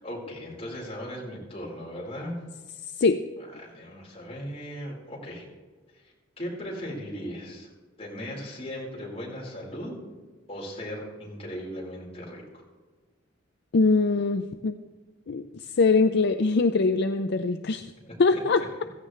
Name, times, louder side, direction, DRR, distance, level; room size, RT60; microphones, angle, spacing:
voice 1, 0.0-2.4 3.4-5.5 5.9-7.7 8.0-10.0 10.5-12.6 18.0-18.6, equal, 30° left, -3 dB, 4.6 m, -38 dB
voice 2, 13.7-14.8 15.3-17.9 18.2-18.8, left 3 dB, 60° left, 9 dB, 0.5 m, -23 dB
16.0 x 15.0 x 3.3 m, 1.4 s
head